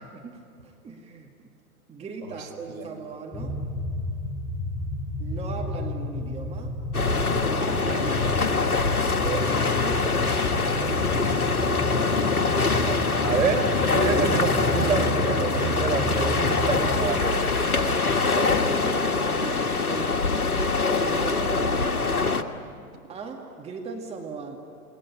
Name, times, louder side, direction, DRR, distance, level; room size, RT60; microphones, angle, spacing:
voice 1, 0.0-1.5 1.9-3.6 5.2-6.8 7.5-8.9 9.2-11.2 16.9-17.3 18.3-20.6 20.9-22.2 23.1-24.6, right 4 dB, 15° right, 1 dB, 2.1 m, -37 dB
sound 1, 3.3-17.1, left 1 dB, 5° left, 1.2 m, -31 dB
sound 2, 6.9-22.4, left 4 dB, 75° left, 1.7 m, -24 dB
Walk footsteps, 9.9-13.7 14.3-14.8 15.3-15.7 16.0-18.9 19.2-19.3, left 4 dB, 35° left, 7.4 m, -35 dB
voice 2, 13.2-17.9 18.2-18.4, right 5 dB, 65° right, 3 dB, 4.7 m, -28 dB
28.0 x 21.0 x 9.9 m, 2.5 s
figure-of-eight pair, 105°, 44 cm